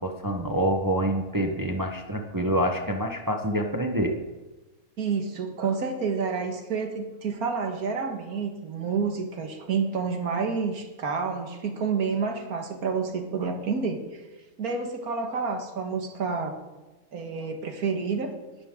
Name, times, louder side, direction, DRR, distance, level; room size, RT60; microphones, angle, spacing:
voice 1, 0.0-4.2, right 1 dB, 15° right, 3 dB, 0.9 m, -26 dB
voice 2, 5.0-14.2 14.6-16.6 17.1-18.3, right 5 dB, 85° right, 5 dB, 2.0 m, -29 dB
20.0 x 10.0 x 3.8 m, 1.2 s
omnidirectional pair, 1.5 m